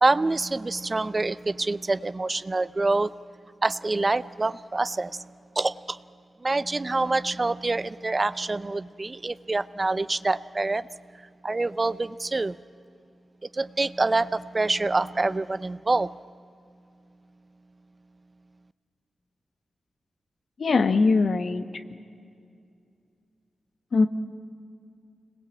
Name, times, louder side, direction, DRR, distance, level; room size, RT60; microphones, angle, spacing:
voice 1, 0.0-3.1 3.6-5.3 5.6-6.0 6.4-10.9 11.4-12.6 13.5-16.2, right 2 dB, 35° right, 16 dB, 0.6 m, -26 dB
voice 2, 20.6-21.6 23.9-24.1, left 4 dB, 65° left, 10 dB, 1.3 m, -21 dB
26.5 x 21.0 x 8.7 m, 2.4 s
cardioid pair, 70°, 0 cm